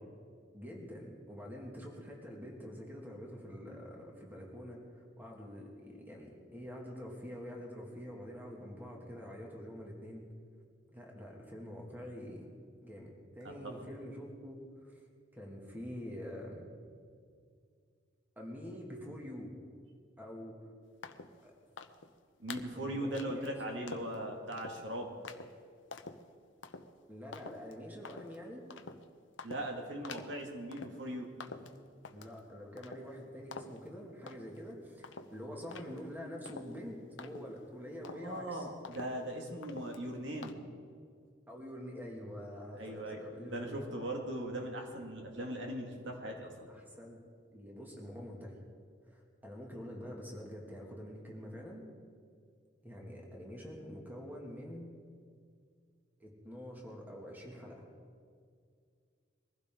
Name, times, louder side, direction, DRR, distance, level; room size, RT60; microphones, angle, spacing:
voice 1, 0.5-10.3 10.9-12.5 12.8-15.0 15.3-16.7 18.4-19.5 20.2-20.7 21.4-21.5 22.8-23.6 27.1-28.7 32.1-38.7 41.5-43.8 46.3-46.4 46.7-47.2 47.5-48.6 49.1-51.8 52.8-54.9 56.2-57.9, equal, 10° right, -1 dB, 2.4 m, -46 dB
sound 1, 21.0-21.4 21.8-22.1 22.5-22.8 23.1-23.5 23.9-24.2 24.5-24.8 25.2-25.5 25.9-26.2 26.6-26.9 27.3-27.7 28.1-28.4 28.7-29.0 29.4-29.7 30.0-30.4 30.7-31.1 31.4-32.4 32.8-33.2 33.5-33.9 34.3-34.7 35.0-37.7 38.0-38.4 38.8-39.3 39.6-40.1 40.4-40.5, left 4 dB, 70° left, 0.9 m, -48 dB
voice 2, 22.4-25.1 29.4-31.3 31.6-32.0 38.1-40.6 42.8-46.7, right 1 dB, 65° right, 1 dB, 2.2 m, -40 dB
22.5 x 15.5 x 3.9 m, 2.2 s
head